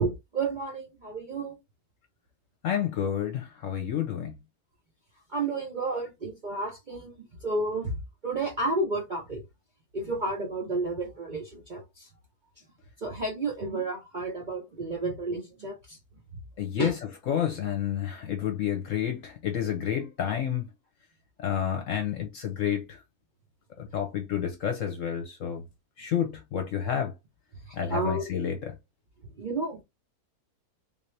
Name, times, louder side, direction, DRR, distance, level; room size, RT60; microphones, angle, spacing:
voice 1, 0.0-1.6 5.3-9.4 9.9-12.1 13.0-16.0 16.8-16.9 27.7-28.3 29.4-29.8, right 3 dB, 40° right, 0.7 m, -31 dB
voice 2, 2.6-4.3 16.6-20.7 21.4-23.0 23.8-25.6 26.0-27.1 27.7-28.7, left 9 dB, 60° left, 1.0 m, -30 dB
3.6 x 2.7 x 3.2 m
omnidirectional pair, 1.6 m